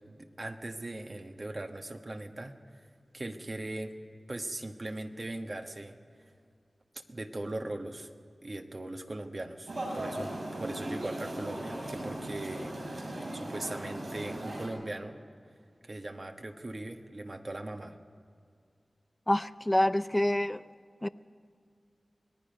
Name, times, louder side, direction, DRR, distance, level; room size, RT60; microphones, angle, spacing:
voice 1, 0.1-2.5 3.1-3.9 4.3-6.0 7.1-8.1 8.4-12.7 13.3-15.2 15.8-18.0, right 2 dB, 45° right, 1.4 m, -39 dB
sound 1, 9.7-14.7, right 1 dB, 65° right, 7.3 m, -38 dB
voice 2, 19.3-20.6 21.0-21.1, left 1 dB, 20° left, 0.6 m, -27 dB
26.0 x 19.0 x 5.3 m
cardioid pair, 50°, 0 cm